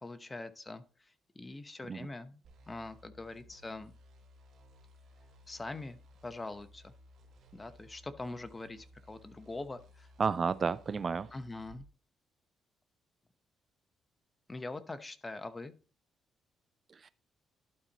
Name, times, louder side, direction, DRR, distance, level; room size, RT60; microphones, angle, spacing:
voice 1, 0.0-3.9 5.5-6.0 6.2-6.9 7.5-10.1 11.3-11.9 14.5-15.7, left 2 dB, 20° left, 0.9 m, -43 dB
sound 1, 2.4-11.9, left 1 dB, 70° right, 2.7 m, -59 dB
voice 2, 10.2-11.4 16.9-17.1, right 5 dB, 40° right, 0.3 m, -32 dB
12.0 x 4.3 x 4.0 m
cardioid pair, 90°, 0 cm